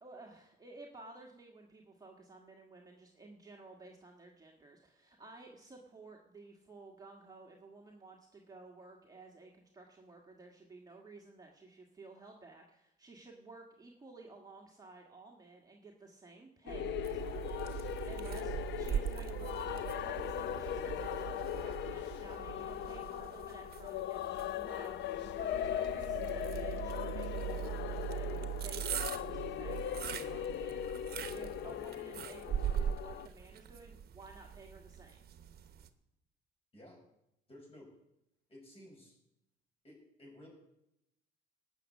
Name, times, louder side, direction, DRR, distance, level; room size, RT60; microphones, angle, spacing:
voice 1, 0.0-35.2, right 3 dB, 20° right, 0 dB, 1.5 m, -54 dB
sound 1, 16.7-33.3, left 12 dB, 65° left, 0.5 m, -39 dB
sound 2, 16.7-23.4 23.7-24.0 24.4-24.5 25.0-31.7, right 13 dB, 75° right, 0.7 m, -44 dB
sound 3, 17.0-35.9, right 8 dB, 50° right, 1.0 m, -43 dB
voice 2, 37.5-37.9 38.5-39.1 39.8-40.5, left 1 dB, 30° left, 0 dB, 6.4 m, -54 dB
18.0 x 6.5 x 8.3 m, 0.84 s
cardioid pair, 125°, 20 cm